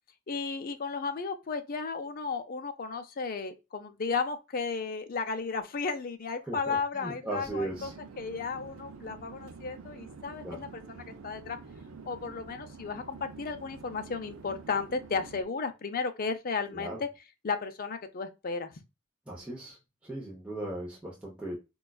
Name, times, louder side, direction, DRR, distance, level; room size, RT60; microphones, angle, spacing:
voice 1, 0.3-7.9 8.2-11.6 12.0-17.1 17.4-18.7, left 4 dB, 45° left, 0.5 m, -34 dB
voice 2, 6.5-7.9 10.4-10.6 16.7-17.0 19.3-19.8 20.0-21.6, right 1 dB, 5° right, 0.7 m, -37 dB
Conversation / Chatter / Fixed-wing aircraft airplane, 7.5-15.4, right 4 dB, 75° right, 0.5 m, -48 dB
5.1 x 2.3 x 2.3 m
head